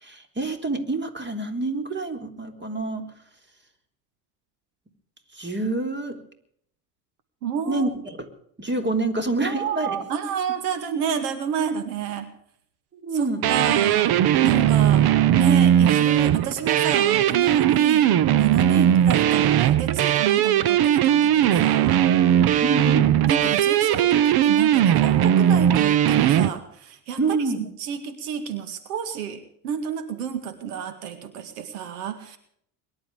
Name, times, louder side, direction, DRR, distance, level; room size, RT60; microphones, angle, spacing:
voice 1, 0.0-3.0 5.3-6.2 7.7-8.3 8.6-10.0 13.0-13.4 18.8-18.9 22.6-23.1 27.2-27.6, right 3 dB, 25° right, 7 dB, 3.9 m, -27 dB
voice 2, 7.4-7.9 9.4-12.3 13.1-14.1 14.4-15.1 15.4-22.1 23.3-27.2 27.8-32.4, right 8 dB, 85° right, 10 dB, 2.1 m, -30 dB
sound 1, 13.4-26.5, right 10 dB, 55° right, 1.2 m, -19 dB
23.0 x 12.0 x 5.0 m, 0.66 s
hypercardioid pair, 75°, 45 cm